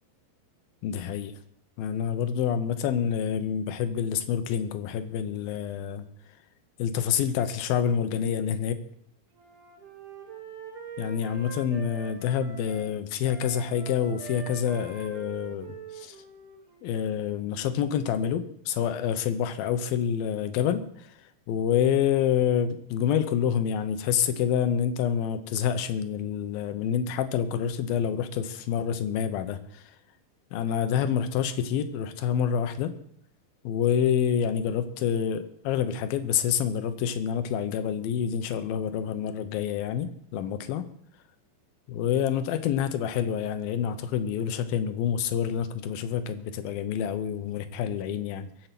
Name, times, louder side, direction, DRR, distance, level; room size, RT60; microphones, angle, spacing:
voice 1, 0.8-1.3 1.8-6.1 6.8-8.8 11.0-16.2 16.8-29.8 30.5-32.9 33.6-40.9 41.9-48.5, left 8 dB, 80° left, 10 dB, 2.2 m, -27 dB
Wind instrument woodwind instrument, 9.4-12.9 13.2-17.0, right 4 dB, 60° right, 4.4 m, -44 dB
23.0 x 7.9 x 5.9 m, 0.66 s
omnidirectional pair, 5.3 m